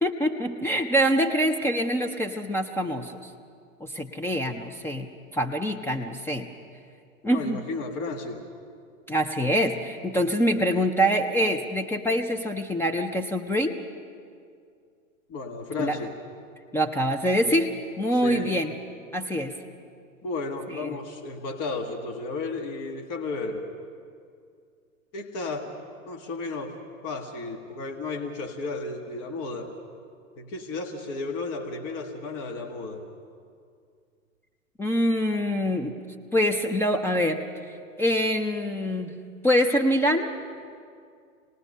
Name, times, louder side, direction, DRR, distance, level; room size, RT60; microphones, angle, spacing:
voice 1, 0.0-3.3 3.8-5.1 5.3-6.5 7.2-7.6 9.1-13.7 15.8-16.0 16.7-17.7 18.0-18.7 19.1-19.5 20.8-21.0 34.8-35.9 36.3-37.4 38.0-39.1 39.4-40.3, equal, 5° left, 4 dB, 0.5 m, -25 dB
voice 2, 7.3-8.4 15.3-16.1 18.1-18.6 20.2-23.6 25.1-25.7 26.0-26.8 27.0-29.7 30.4-33.0, left 3 dB, 35° left, 3 dB, 1.9 m, -33 dB
27.0 x 19.0 x 5.5 m, 2.3 s
hypercardioid pair, 110°, 42 cm